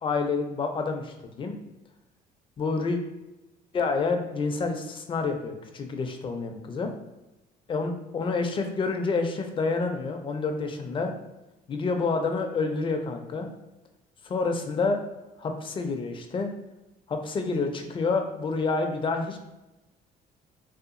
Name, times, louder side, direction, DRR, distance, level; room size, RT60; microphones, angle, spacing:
voice 1, 0.0-1.6 2.6-3.0 3.7-6.9 7.7-11.1 11.7-13.5 14.2-15.0 15.4-16.5 17.1-19.4, left 4 dB, 30° left, 5 dB, 0.4 m, -28 dB
2.8 x 2.2 x 2.5 m, 1.0 s
cardioid pair, 110°, 17 cm